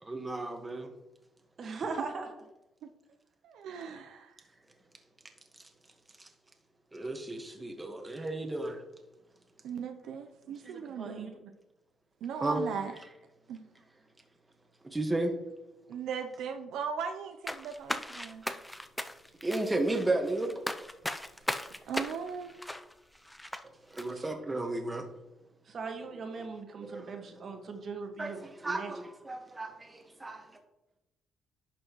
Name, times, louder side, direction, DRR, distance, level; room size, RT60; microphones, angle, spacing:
voice 1, 0.0-0.9 6.2-6.3 6.9-8.8 12.4-12.6 14.8-15.3 18.4-18.6 19.4-20.5 20.8-20.9 23.9-25.1 26.8-27.2 28.2-30.5, right 2 dB, 15° right, 4 dB, 1.5 m, -33 dB
voice 2, 1.6-2.3 3.8-4.0 10.6-11.4 24.1-24.3 25.6-28.9, right 4 dB, 50° right, 4 dB, 1.7 m, -40 dB
voice 3, 3.4-4.3 9.6-11.3 12.2-12.9 13.5-13.6 15.9-18.4 21.9-22.5, right 6 dB, 85° right, 5 dB, 0.6 m, -38 dB
sound 1, 17.5-23.6 24.0-24.1, left 1 dB, 5° left, 0.6 m, -37 dB
11.0 x 6.2 x 3.1 m, 0.94 s
cardioid pair, 90°, 0 cm